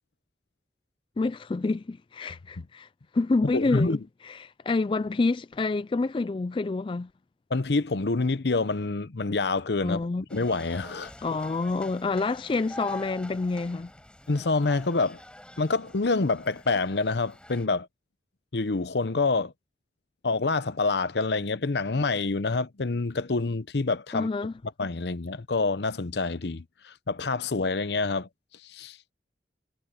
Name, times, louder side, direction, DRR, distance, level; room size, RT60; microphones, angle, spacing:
voice 1, 1.2-2.9 3.1-4.0 4.2-7.1 9.8-10.2 11.2-13.9 24.1-24.5, left 3 dB, 30° left, 0.3 m, -28 dB
voice 2, 3.5-4.0 7.5-11.1 14.3-15.2 15.6-17.9 18.5-19.5 20.2-24.3 24.8-28.3 28.7-29.0, left 3 dB, 70° left, 0.8 m, -27 dB
sound 1, 10.3-17.7, left 1 dB, 5° left, 5.5 m, -46 dB
head